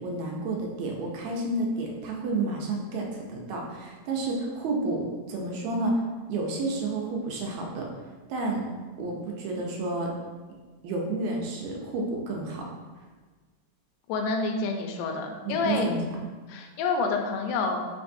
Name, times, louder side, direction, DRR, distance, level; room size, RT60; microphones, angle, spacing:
voice 1, 0.0-6.0 6.3-7.9 8.3-8.7 9.0-10.1 10.8-12.7 15.4-16.0, right 2 dB, 80° right, -1 dB, 1.9 m, -30 dB
voice 2, 14.1-15.9 16.5-17.8, left 4 dB, 80° left, 3 dB, 1.7 m, -28 dB
5.0 x 3.2 x 2.6 m, 1.4 s
omnidirectional pair, 3.3 m